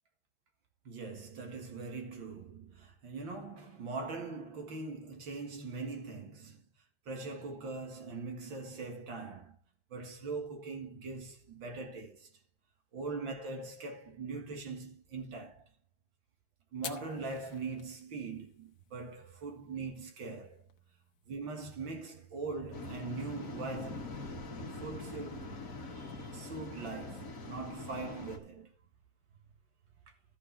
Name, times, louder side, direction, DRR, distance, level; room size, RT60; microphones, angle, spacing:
voice 1, 0.9-6.7 7.1-9.6 9.9-12.3 12.9-15.6 16.7-20.6 21.3-24.2 24.8-25.6 25.9-28.7, right 3 dB, 75° right, 2.5 m, -41 dB
Fire, 16.7-25.9, left 7 dB, 60° left, 1.5 m, -54 dB
Waves surf, 22.7-28.4, left 2 dB, 45° left, 1.8 m, -43 dB
13.0 x 4.9 x 6.0 m
omnidirectional pair, 2.1 m